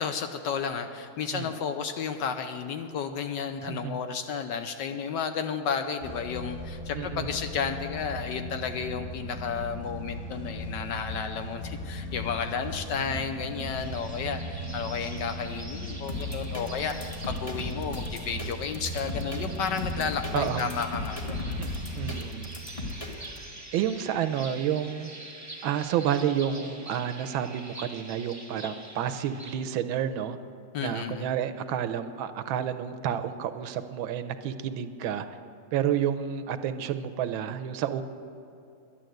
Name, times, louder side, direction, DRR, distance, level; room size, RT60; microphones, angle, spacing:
voice 1, 0.0-21.7 30.7-31.3, left 6 dB, 70° left, 7 dB, 1.1 m, -32 dB
voice 2, 3.6-4.0 6.9-7.3 20.3-20.7 21.6-21.7 21.9-22.5 23.7-25.1 25.6-30.4 30.8-35.2 35.7-38.0, right 9 dB, 80° right, 11 dB, 1.4 m, -30 dB
sound 1, 6.0-22.1, equal, 40° left, 4.3 m, -37 dB
sound 2, 13.7-29.6, right 1 dB, 10° right, 1.0 m, -45 dB
sound 3, 16.1-23.4, left 2 dB, 20° left, 1.2 m, -37 dB
11.5 x 10.5 x 7.7 m, 2.6 s
omnidirectional pair, 2.3 m